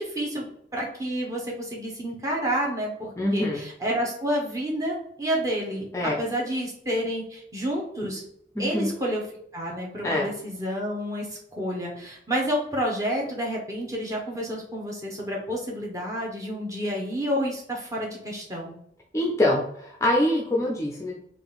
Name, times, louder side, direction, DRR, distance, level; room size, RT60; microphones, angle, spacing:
voice 1, 0.0-8.2 8.6-9.2 9.5-11.3 11.5-18.7, equal, 20° right, -2 dB, 0.9 m, -29 dB
voice 2, 3.2-3.6 5.9-6.1 8.6-8.9 10.0-10.3 19.1-21.1, left 1 dB, 15° left, -1 dB, 0.4 m, -24 dB
3.7 x 2.5 x 3.9 m, 0.71 s
head